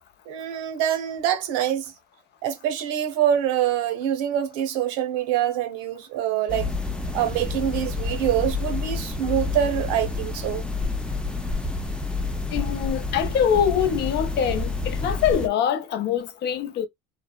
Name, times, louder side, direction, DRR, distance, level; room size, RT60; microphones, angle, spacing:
voice 1, 0.3-1.9 2.4-6.7 7.1-10.6, right 10 dB, 85° right, 0.9 m, -25 dB
sound 1, 6.5-15.5, left 3 dB, 5° left, 0.4 m, -29 dB
voice 2, 12.5-16.9, left 8 dB, 55° left, 0.6 m, -24 dB
3.2 x 2.0 x 2.3 m
cardioid pair, 115°, 21 cm